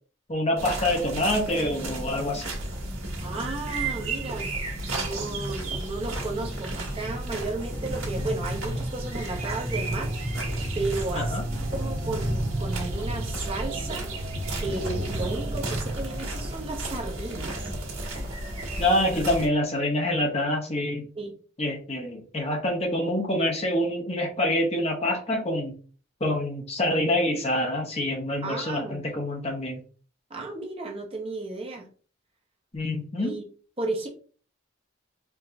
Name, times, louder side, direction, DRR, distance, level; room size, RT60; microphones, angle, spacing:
voice 1, 0.3-2.4 11.1-11.4 18.8-21.1 21.6-25.7 26.2-29.8 32.7-33.4, left 1 dB, 30° left, 1 dB, 0.7 m, -26 dB
sound 1, 0.6-19.5, right 1 dB, 85° right, 1.4 m, -31 dB
voice 2, 3.2-4.5 4.9-10.1 10.7-14.1 14.6-17.7 21.1-21.3 28.4-29.1 30.3-31.9 33.2-33.5 33.8-34.1, right 3 dB, 25° right, 2 dB, 0.6 m, -33 dB
4.6 x 2.7 x 2.5 m, 0.40 s
head